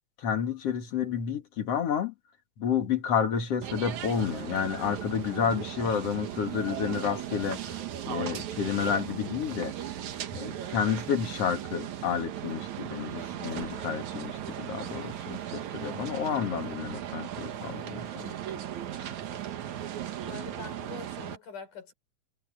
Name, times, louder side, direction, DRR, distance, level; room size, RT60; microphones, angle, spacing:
voice 1, 0.2-2.1 2.6-7.8 8.1-9.7 10.3-18.3 19.0-19.1, left 7 dB, 55° left, 2.8 m, -30 dB
sound 1, 3.6-21.4, right 11 dB, 70° right, 2.7 m, -37 dB
voice 2, 20.2-21.9, left 6 dB, 90° left, 6.1 m, -44 dB
omnidirectional pair, 3.5 m